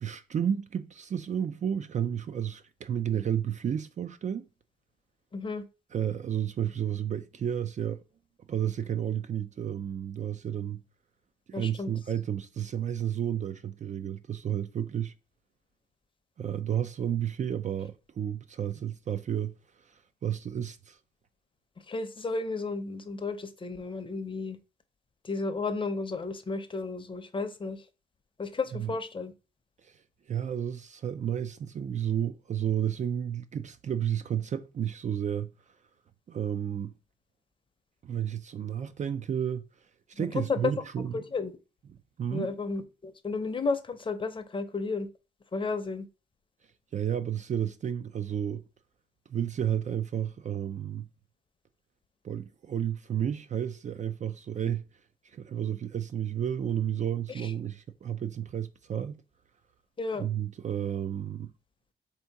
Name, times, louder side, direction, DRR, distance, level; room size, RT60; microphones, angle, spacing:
voice 1, 0.0-4.5 5.9-8.0 8.5-10.8 11.5-15.1 16.4-21.0 28.8-28.9 29.8-30.0 30.3-35.5 36.3-36.9 38.0-39.6 40.1-41.2 42.2-42.5 46.9-48.6 49.3-51.1 52.2-54.8 55.2-59.2 60.2-61.5, right 9 dB, 40° right, 0.4 m, -32 dB
voice 2, 5.3-5.6 11.5-11.9 21.9-24.6 25.2-27.8 28.4-29.3 40.2-40.7 41.1-41.5 42.3-45.1 45.5-46.1 57.3-57.5 60.0-60.3, left 4 dB, 25° left, 0.7 m, -33 dB
3.5 x 2.8 x 4.5 m
cardioid pair, 90°, 20 cm